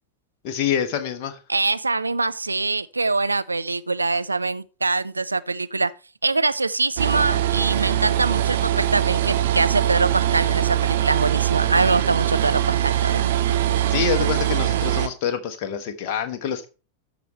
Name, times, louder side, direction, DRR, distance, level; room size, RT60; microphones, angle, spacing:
voice 1, 0.4-1.4 13.9-16.7, left 7 dB, 45° left, 1.2 m, -26 dB
voice 2, 1.5-5.9 6.2-13.2, right 3 dB, 80° right, 0.5 m, -23 dB
sound 1, 7.0-15.1, right 12 dB, 55° right, 0.9 m, -22 dB
13.5 x 5.0 x 4.3 m
figure-of-eight pair, 90°, 0 cm